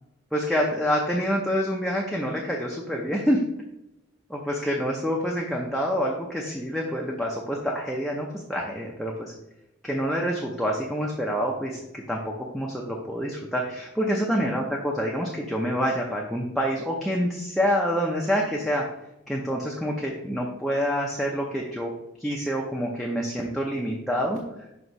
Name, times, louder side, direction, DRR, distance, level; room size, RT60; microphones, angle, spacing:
voice 1, 0.3-3.4 4.3-9.3 9.8-18.8 19.3-21.9 22.2-24.4, equal, ahead, -3 dB, 0.6 m, -27 dB
6.0 x 3.0 x 5.3 m, 0.90 s
head